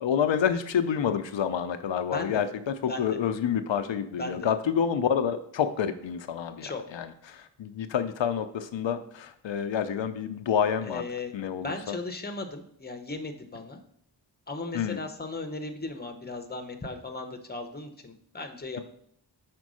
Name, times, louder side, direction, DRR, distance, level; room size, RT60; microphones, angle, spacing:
voice 1, 0.0-2.5 2.8-6.7 6.9-11.0 11.3-11.9 14.7-15.0, left 8 dB, 85° left, 9 dB, 0.6 m, -28 dB
voice 2, 2.1-2.4 2.9-3.2 4.2-4.5 6.6-6.8 10.8-13.8 14.5-18.8, left 2 dB, 20° left, 6 dB, 0.8 m, -37 dB
5.2 x 4.5 x 6.2 m, 0.67 s
wide cardioid pair, 100°, 44 cm